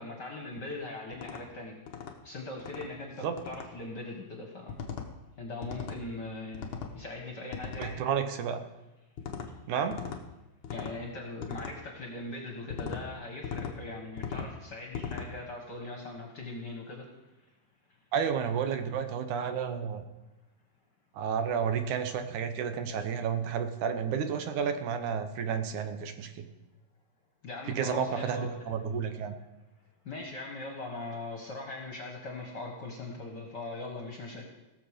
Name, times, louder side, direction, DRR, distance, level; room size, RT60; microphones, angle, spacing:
voice 1, 0.0-1.8 2.2-6.7 6.9-8.0 9.5-9.6 10.7-17.1 27.4-28.6 30.0-34.4, left 2 dB, 45° left, 1 dB, 1.5 m, -40 dB
sound 1, 1.1-1.4 1.9-2.1 2.6-2.9 3.4-3.7 4.7-5.1 5.6-6.0 6.5-6.9 7.5-7.9 9.2-9.5 9.9-10.2 10.6-11.0 11.4-11.7 12.7-13.0 13.4-13.7 14.2-14.5 14.9-15.3, left 6 dB, 65° left, 1.3 m, -38 dB
voice 2, 7.8-8.6 9.7-10.0 18.1-20.1 21.1-26.5 27.7-29.3, right 7 dB, 80° right, 8 dB, 2.3 m, -31 dB
17.5 x 7.0 x 5.1 m, 1.0 s
omnidirectional pair, 3.5 m